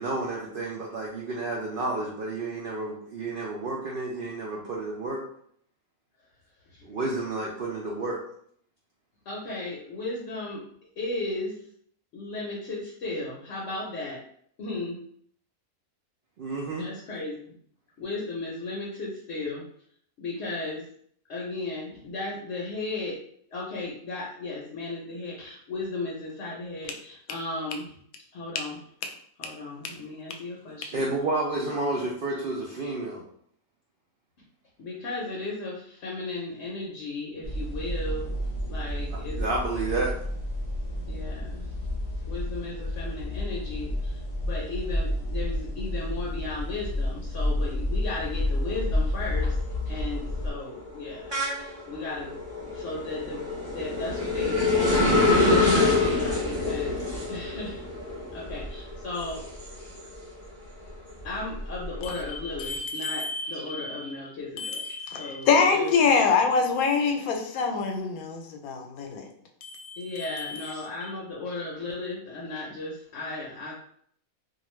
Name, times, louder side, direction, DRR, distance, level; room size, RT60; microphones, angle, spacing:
voice 1, 0.0-5.2 6.8-8.2 16.4-16.9 30.9-33.2 39.3-40.1, right 2 dB, 75° right, -3 dB, 0.5 m, -30 dB
voice 2, 9.3-10.6 11.0-11.6 12.1-14.2 14.6-15.0 16.8-17.6 18.0-19.7 20.2-20.9 21.3-23.2 23.5-28.0 28.3-28.8 29.4-31.1 31.6-32.1 34.8-38.4 38.7-39.4 41.1-41.7 42.3-55.0 55.4-57.8 58.3-59.4 61.2-64.9 65.1-66.3 70.0-73.7, left 2 dB, 60° left, -3 dB, 0.8 m, -35 dB
sound 1, 37.4-50.5, left 1 dB, 40° left, 0.4 m, -30 dB
sound 2, 48.4-48.8 49.2-60.4 60.9-62.6, left 2 dB, 25° right, 1.0 m, -26 dB
voice 3, 62.6-64.0 64.6-69.3 69.6-70.0 70.4-70.5, left 5 dB, 90° left, 3 dB, 1.0 m, -25 dB
2.4 x 2.4 x 3.0 m, 0.64 s
omnidirectional pair, 1.5 m